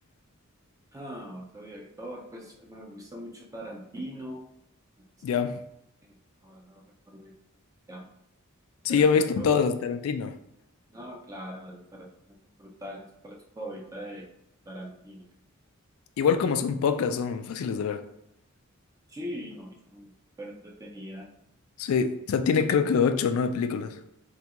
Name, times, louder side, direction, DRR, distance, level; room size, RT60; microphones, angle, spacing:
voice 1, 0.9-4.4 5.3-5.5 6.4-7.3 7.9-8.0 8.9-9.5 10.9-14.3 14.7-15.3 19.1-20.1 20.4-21.3, equal, 15° right, 0.4 m, -41 dB
voice 2, 5.2-5.6 8.8-10.4 16.2-18.1 21.8-24.0, left 6 dB, 75° left, 0.3 m, -25 dB
3.4 x 2.2 x 2.9 m
head